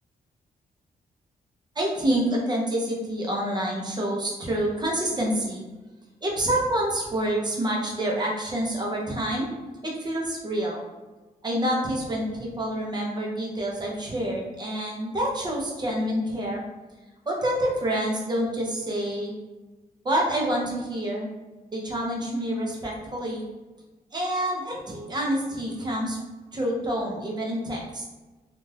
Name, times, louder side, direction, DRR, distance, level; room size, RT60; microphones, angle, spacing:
voice 1, 1.8-5.6 6.2-9.5 9.8-10.8 11.4-16.6 17.3-19.3 20.0-21.3 21.7-23.4 24.1-26.2 26.5-28.0, right 1 dB, 30° right, -2 dB, 0.7 m, -27 dB
2.5 x 2.4 x 3.2 m, 1.2 s
cardioid pair, 110°, 15 cm